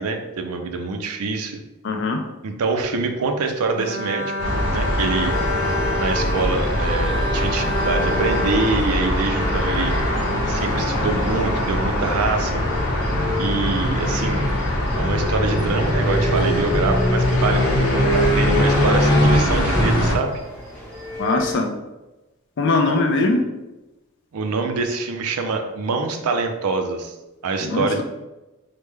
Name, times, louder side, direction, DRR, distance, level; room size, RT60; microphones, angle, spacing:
voice 1, 0.0-1.6 2.4-4.3 4.7-5.3 6.0-9.9 10.5-12.5 13.4-14.5 15.0-20.4 24.3-27.1 27.4-28.0, right 3 dB, 80° right, 5 dB, 0.4 m, -25 dB
voice 2, 1.8-2.2 21.2-21.7 22.6-23.4 27.6-28.0, left 3 dB, 55° left, 3 dB, 0.4 m, -21 dB
Bowed string instrument, 3.8-11.1, left 1 dB, 25° right, 0.7 m, -29 dB
sound 1, 4.4-20.2, left 1 dB, 85° left, 0.8 m, -21 dB
sound 2, 5.2-21.6, left 1 dB, 10° left, 0.9 m, -36 dB
3.3 x 2.1 x 3.2 m, 1.0 s
head